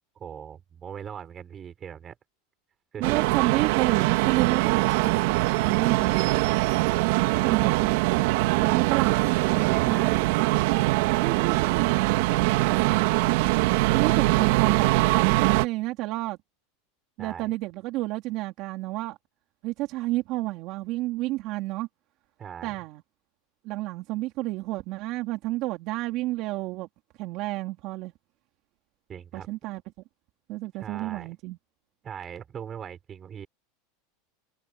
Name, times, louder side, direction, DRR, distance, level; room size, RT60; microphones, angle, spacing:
voice 1, 0.2-2.1 2.9-3.4 8.6-8.8 9.6-10.3 12.6-13.0 17.2-17.5 22.4-22.8 29.1-29.5 30.8-31.3 32.0-33.5, right 8 dB, 25° right, 6.2 m, -40 dB
voice 2, 3.0-6.4 7.1-8.0 8.6-9.2 9.8-10.5 11.1-11.9 13.9-16.4 17.2-19.2 19.6-21.9 22.6-23.0 23.6-26.9 27.2-28.1 29.3-29.8 30.5-31.6, right 18 dB, 50° right, 3.1 m, -30 dB
sound 1, 3.0-15.7, right 20 dB, 70° right, 2.6 m, -23 dB
supercardioid pair, 140°, 0 cm